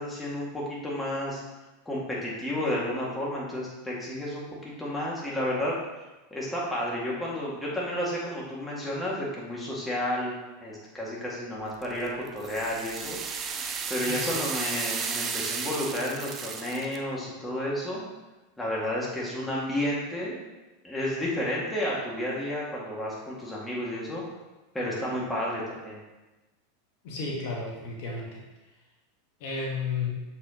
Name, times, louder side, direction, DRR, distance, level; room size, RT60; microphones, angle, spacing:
voice 1, 0.0-1.4 1.9-5.8 6.3-10.3 10.6-13.2 13.9-18.0 18.6-20.4 20.8-24.2 24.7-26.0, left 1 dB, 10° left, -5 dB, 1.9 m, -31 dB
sound 1, 11.8-17.0, right 6 dB, 30° right, 0.6 m, -33 dB
voice 2, 27.0-28.4 29.4-30.2, left 4 dB, 65° left, -2 dB, 1.3 m, -32 dB
7.1 x 4.7 x 2.9 m, 1.1 s
hypercardioid pair, 110°, 0 cm